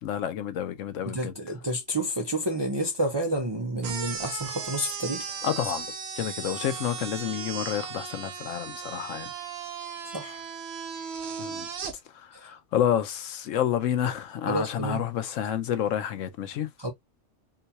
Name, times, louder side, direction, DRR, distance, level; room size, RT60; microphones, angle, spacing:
voice 1, 0.0-1.3 5.4-5.9 6.2-9.3 11.4-11.7 12.4-16.7, left 9 dB, 85° left, 1.0 m, -29 dB
voice 2, 1.1-5.2 10.1-10.4 14.5-15.0 16.8-16.9, right 1 dB, 40° right, 0.3 m, -29 dB
sound 1, 3.8-11.9, right 6 dB, 60° right, 1.0 m, -36 dB
3.8 x 2.3 x 2.7 m
omnidirectional pair, 1.3 m